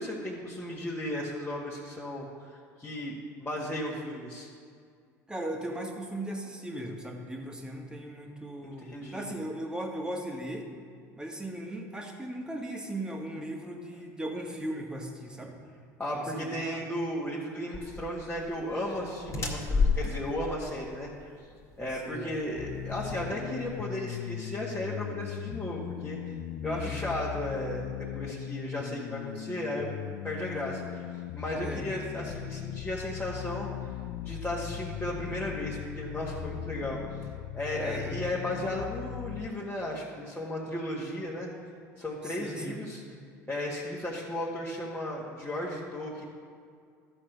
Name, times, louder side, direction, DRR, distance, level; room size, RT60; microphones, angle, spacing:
voice 1, 0.0-3.1 3.4-4.5 8.6-9.3 16.0-21.3 21.8-26.4 26.6-29.9 30.2-31.1 31.3-33.9 34.2-37.0 37.5-41.5 42.0-43.0 43.5-46.2, left 1 dB, 15° left, -6 dB, 1.8 m, -35 dB
voice 2, 5.3-10.7 11.2-15.6 16.1-16.8 22.0-22.4 26.6-27.1 31.6-31.9 37.8-38.2 42.2-42.8, right 1 dB, 10° right, 0 dB, 1.7 m, -38 dB
sound 1, 17.7-23.8, left 4 dB, 35° left, 2.1 m, -33 dB
sound 2, 22.6-39.5, left 12 dB, 60° left, 0.5 m, -39 dB
13.0 x 4.4 x 6.6 m, 2.2 s
hypercardioid pair, 80°, 9 cm